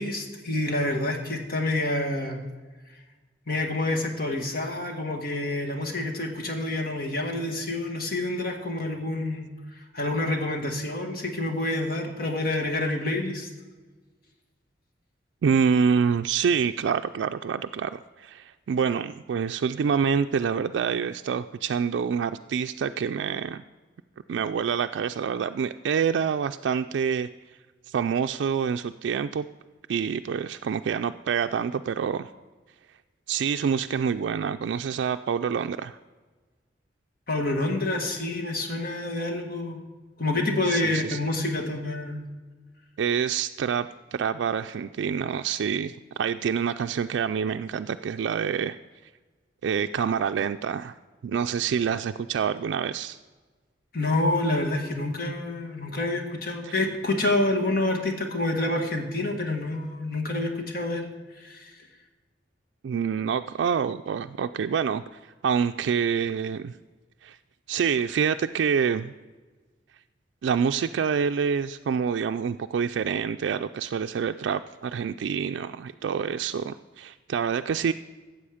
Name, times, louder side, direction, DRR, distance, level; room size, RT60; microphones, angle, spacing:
voice 1, 0.0-2.4 3.5-9.5 9.9-13.5 37.3-39.8 40.2-42.2 53.9-61.1 61.4-61.7, left 2 dB, 55° left, 3 dB, 1.6 m, -28 dB
voice 2, 15.4-23.6 24.3-27.3 27.9-29.4 29.9-32.3 33.3-36.0 40.7-41.2 43.0-48.8 49.6-50.9 51.2-53.2 56.6-56.7 62.8-65.0 65.4-66.7 67.2-67.4 67.7-69.1 70.4-77.9, right 7 dB, 80° right, 7 dB, 0.3 m, -27 dB
14.0 x 7.7 x 5.0 m, 1.3 s
head